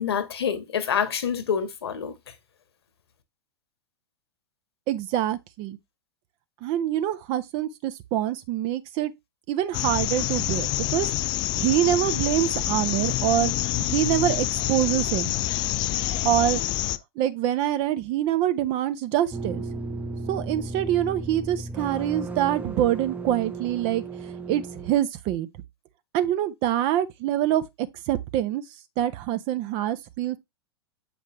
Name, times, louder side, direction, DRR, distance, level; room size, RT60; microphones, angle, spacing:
voice 1, 0.0-2.1, left 7 dB, 65° left, 1.4 m, -27 dB
voice 2, 4.9-5.8 6.6-9.1 9.5-11.1 11.5-13.5 13.8-15.3 16.2-16.6 17.2-19.6 20.3-24.0 24.5-25.5 26.1-28.6 29.0-30.4, right 12 dB, 40° right, 0.8 m, -25 dB
sound 1, 9.7-17.0, left 15 dB, 30° left, 0.4 m, -27 dB
sound 2, 19.3-24.9, right 3 dB, 10° right, 0.8 m, -35 dB
7.6 x 5.2 x 3.1 m
figure-of-eight pair, 95°, 14 cm